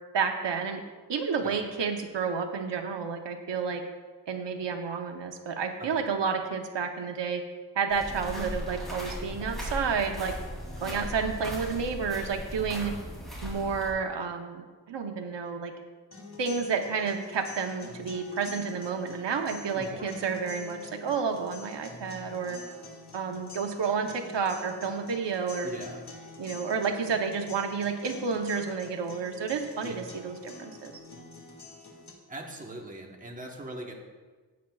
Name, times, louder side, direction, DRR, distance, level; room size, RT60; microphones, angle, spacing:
voice 1, 0.1-0.8 1.1-3.8 4.3-7.4 7.8-10.4 10.8-12.9 13.4-15.7 16.4-22.6 23.1-25.7 26.4-30.9, right 5 dB, 80° right, 4 dB, 0.9 m, -30 dB
voice 2, 1.4-1.8 5.8-6.0 10.8-11.1 12.8-13.2 19.7-20.2 25.6-26.0 29.8-30.0 32.3-33.9, right 1 dB, 20° right, 0 dB, 1.1 m, -41 dB
sound 1, 7.9-13.9, equal, ahead, 2.8 m, -38 dB
sound 2, 16.1-32.1, left 4 dB, 65° left, 2.0 m, -46 dB
15.5 x 8.6 x 2.4 m, 1.4 s
wide cardioid pair, 175°, 42 cm